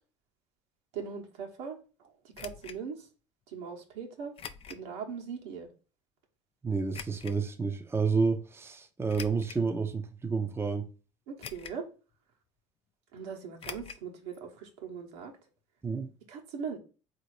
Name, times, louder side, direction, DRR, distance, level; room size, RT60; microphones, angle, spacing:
voice 1, 0.9-2.1 2.4-3.1 3.5-4.3 4.7-5.7 11.3-11.9 13.1-15.3 16.3-16.8, right 6 dB, 75° right, 1.2 m, -40 dB
sound 1, 2.3-2.8 4.4-4.9 5.4-5.5 6.9-7.4 9.1-9.7 10.3-10.4 11.4-11.9 12.1-12.2 13.6-14.0 14.3-14.4 14.7-14.8, left 7 dB, 40° left, 0.5 m, -44 dB
voice 2, 6.6-10.9 15.8-16.1, right 4 dB, 15° right, 0.7 m, -30 dB
4.0 x 2.8 x 4.7 m
hypercardioid pair, 75°, 15 cm